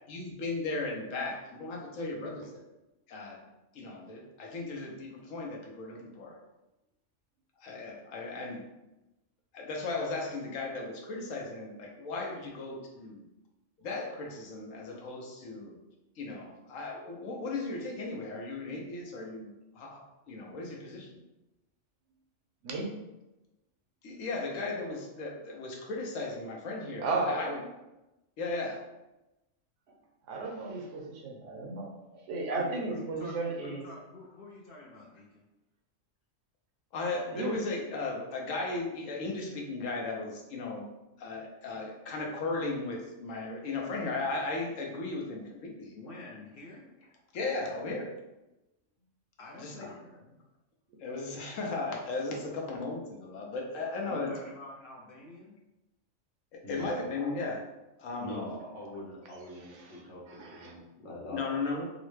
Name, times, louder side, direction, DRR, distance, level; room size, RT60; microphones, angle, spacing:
voice 1, 0.1-2.6 3.1-3.4 3.7-6.4 7.6-8.7 9.5-13.2 13.8-15.7 16.2-21.2 24.0-27.6 28.4-28.9 36.9-40.9 41.2-45.9 47.3-48.1 49.6-49.9 51.0-54.3 56.5-57.6 58.0-58.5 61.3-61.8, left 3 dB, 85° left, 0 dB, 1.1 m, -36 dB
voice 2, 22.6-23.0 27.0-27.6 29.9-30.0 30.3-33.9 37.3-37.6 59.7-60.0 60.3-60.7, right 3 dB, 70° right, 2 dB, 0.9 m, -35 dB
voice 3, 32.5-35.5 45.9-46.9 49.4-50.4 54.1-55.6, left 2 dB, 60° left, -2 dB, 0.7 m, -48 dB
voice 4, 56.6-57.0 58.2-61.4, left 1 dB, 45° left, -4 dB, 1.0 m, -43 dB
3.8 x 2.1 x 3.1 m, 0.98 s
omnidirectional pair, 1.3 m